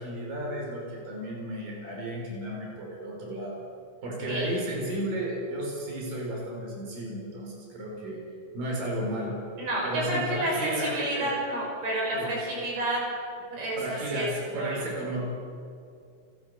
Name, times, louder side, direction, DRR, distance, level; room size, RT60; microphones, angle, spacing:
voice 1, 0.0-3.5 4.0-8.2 8.5-9.4 9.8-11.3 12.1-12.3 13.8-15.3, right 1 dB, 60° right, -2 dB, 6.7 m, -33 dB
voice 2, 9.6-13.1 13.5-14.3 14.6-14.8, right 1 dB, 90° right, -3 dB, 8.1 m, -30 dB
29.5 x 14.5 x 6.8 m, 2.4 s
omnidirectional pair, 4.4 m